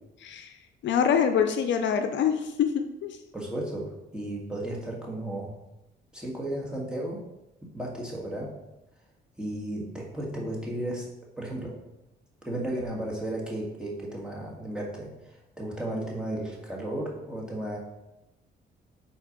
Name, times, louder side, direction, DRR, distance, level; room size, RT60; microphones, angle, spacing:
voice 1, 0.2-0.6 0.8-3.2, left 7 dB, 65° left, 7 dB, 0.5 m, -25 dB
voice 2, 3.3-5.6 6.1-7.2 7.6-8.5 9.4-11.1 11.4-11.8 12.4-17.8, right 1 dB, 5° right, -3 dB, 1.6 m, -34 dB
4.4 x 4.1 x 5.1 m, 0.94 s
cardioid pair, 90°, 20 cm